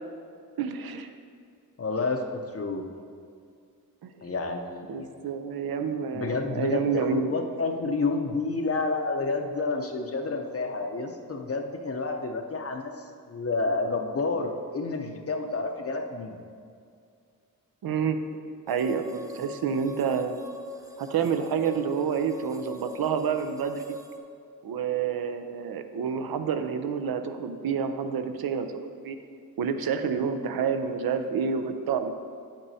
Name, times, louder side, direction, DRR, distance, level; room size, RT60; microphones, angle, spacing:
voice 1, 0.6-1.1 4.0-4.3 4.9-7.3 17.8-18.2 18.7-20.4 21.0-23.9 24.6-29.2 29.6-32.1, right 6 dB, 80° right, 8 dB, 0.6 m, -29 dB
voice 2, 1.8-2.9 4.2-5.1 6.1-16.4, left 3 dB, 40° left, 3 dB, 0.6 m, -30 dB
sound 1, 18.7-24.2, equal, 10° right, 0.6 m, -41 dB
9.4 x 8.9 x 2.7 m, 2.3 s
wide cardioid pair, 120°, 36 cm